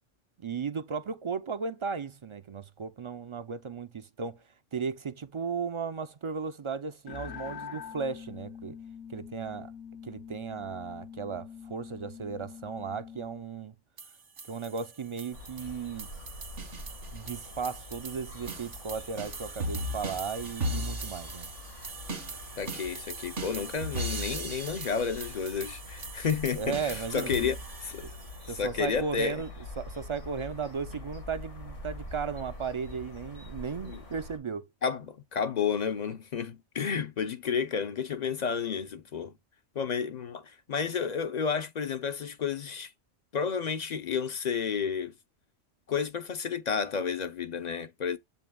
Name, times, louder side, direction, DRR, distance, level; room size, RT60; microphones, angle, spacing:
voice 1, 0.4-8.8 9.1-9.7 10.0-13.8 14.4-16.1 17.1-21.5 26.5-27.5 28.0-28.1 28.5-34.7, right 5 dB, 55° right, 0.3 m, -36 dB
sound 1, 7.1-13.4, left 8 dB, 65° left, 0.9 m, -44 dB
sound 2, 14.0-28.5, right 1 dB, 80° right, 2.0 m, -39 dB
sound 3, 15.3-34.4, left 2 dB, 85° left, 2.3 m, -45 dB
voice 2, 22.6-28.1 28.5-29.4 33.8-34.0 34.8-39.3 39.8-42.9 43.3-45.1 45.9-48.2, left 6 dB, 50° left, 0.5 m, -31 dB
7.8 x 5.5 x 2.2 m
omnidirectional pair, 1.2 m